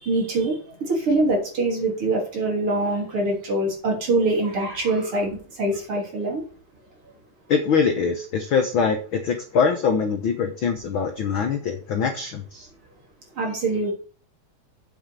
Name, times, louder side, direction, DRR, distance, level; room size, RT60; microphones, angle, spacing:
voice 1, 0.0-6.4 13.4-13.9, right 2 dB, 45° right, 0 dB, 4.0 m, -24 dB
voice 2, 7.5-12.7, left 6 dB, 65° left, 6 dB, 1.3 m, -23 dB
7.9 x 7.3 x 6.7 m, 0.41 s
omnidirectional pair, 3.5 m